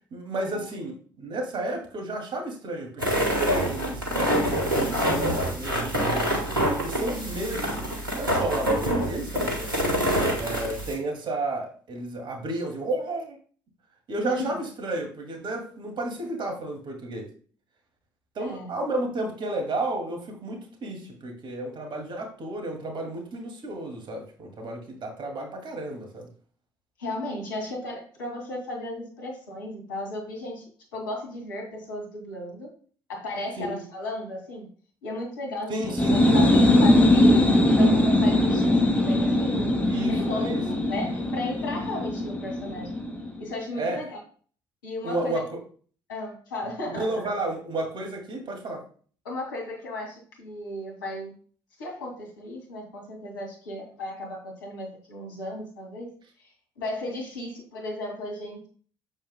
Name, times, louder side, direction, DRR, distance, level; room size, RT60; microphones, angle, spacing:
voice 1, 0.1-6.4 6.8-7.8 8.1-9.7 10.4-13.4 14.1-17.3 18.3-26.3 33.6-33.8 35.7-36.2 39.8-40.6 43.8-44.0 45.0-45.5 46.9-48.8, right 2 dB, 45° right, 3 dB, 2.3 m, -32 dB
sound 1, 3.0-10.9, equal, 90° right, 1.6 m, -26 dB
voice 2, 7.0-7.3 14.2-14.5 18.4-18.7 27.0-32.7 33.1-34.7 35.0-38.8 39.0-43.0 43.4-44.2 44.8-45.4 46.1-47.1 49.2-51.3 51.8-56.1 56.8-58.7, left 1 dB, 75° left, 0 dB, 2.3 m, -35 dB
sound 2, 35.8-43.4, left 1 dB, 15° left, 2.4 m, -21 dB
8.8 x 7.4 x 2.2 m, 0.43 s
figure-of-eight pair, 50°, 11 cm